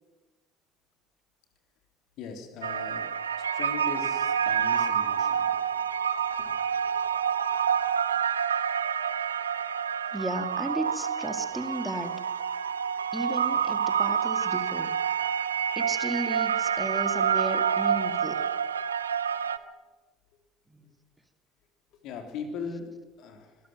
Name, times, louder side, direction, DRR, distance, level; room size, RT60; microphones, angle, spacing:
voice 1, 2.2-3.1 3.4-5.5 6.4-6.5 17.2-17.3 22.0-23.6, left 5 dB, 55° left, 5 dB, 3.5 m, -39 dB
sound 1, 2.6-19.6, right 7 dB, 80° right, 0.8 m, -28 dB
voice 2, 10.1-12.2 13.1-14.9 15.8-18.4 20.7-20.9, right 1 dB, 10° right, 7 dB, 2.2 m, -34 dB
26.0 x 17.5 x 7.6 m, 1.2 s
figure-of-eight pair, 60°, 0 cm